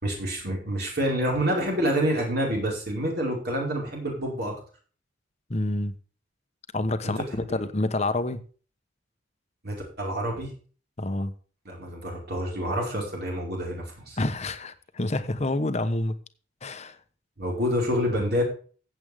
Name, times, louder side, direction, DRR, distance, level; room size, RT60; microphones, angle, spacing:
voice 1, 0.0-4.5 7.0-7.5 9.6-10.5 11.6-14.2 17.4-18.4, equal, 55° right, 5.0 m, -28 dB
voice 2, 5.5-5.9 6.7-8.4 11.0-11.3 14.2-16.2 16.6-17.0, left 2 dB, 35° left, 1.0 m, -28 dB
15.5 x 8.0 x 3.6 m
head